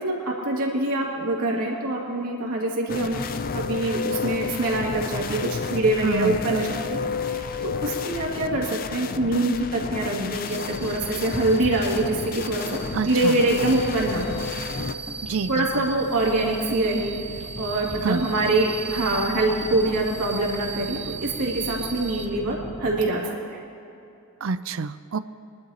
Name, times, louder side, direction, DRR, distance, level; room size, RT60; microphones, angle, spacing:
voice 1, 0.0-3.2 3.5-14.3 15.5-17.2 17.6-23.6, right 2 dB, 85° right, -3 dB, 2.6 m, -25 dB
sound 1, 2.9-14.9, left 5 dB, 40° left, 0.4 m, -31 dB
voice 2, 6.0-6.4 12.9-13.4 15.2-15.9 18.0-18.3 24.4-25.2, right 4 dB, 60° right, 13 dB, 0.4 m, -27 dB
sound 2, 7.5-10.2 10.5-12.6 13.2-16.7 17.0-19.8 20.4-20.6, equal, ahead, 2.7 m, -44 dB
sound 3, 10.2-23.1, right 4 dB, 30° right, 0.9 m, -37 dB
24.0 x 11.5 x 2.9 m, 2.8 s
head